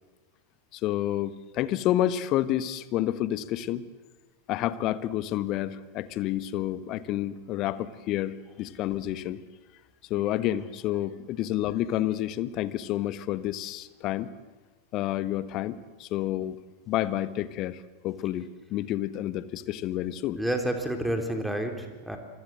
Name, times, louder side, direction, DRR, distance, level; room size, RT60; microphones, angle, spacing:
voice 1, 0.7-3.8 4.5-9.4 10.1-14.3 14.9-16.6 16.9-20.4, left 13 dB, 40° left, 14 dB, 1.3 m, -29 dB
voice 2, 20.4-22.2, right 1 dB, ahead, 4 dB, 3.9 m, -29 dB
27.0 x 24.0 x 7.8 m, 1.2 s
figure-of-eight pair, 90°, 0 cm